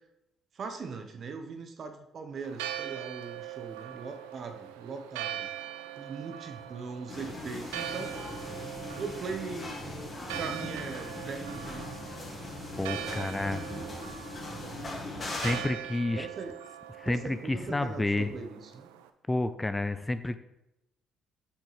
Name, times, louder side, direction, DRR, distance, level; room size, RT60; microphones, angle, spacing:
voice 1, 0.5-5.5 6.0-8.1 9.0-14.0 14.6-14.8 16.1-16.5 17.0-18.9, right 4 dB, 50° right, 6 dB, 1.0 m, -41 dB
Church bell, 2.4-19.1, right 12 dB, 85° right, 0.4 m, -42 dB
sound 1, 7.1-15.6, left 2 dB, 40° left, 2.4 m, -39 dB
voice 2, 12.8-13.7 15.4-16.3 17.0-18.4 19.3-20.4, left 2 dB, 15° left, 11 dB, 0.5 m, -30 dB
8.0 x 6.1 x 3.4 m, 0.89 s
hypercardioid pair, 55°, 0 cm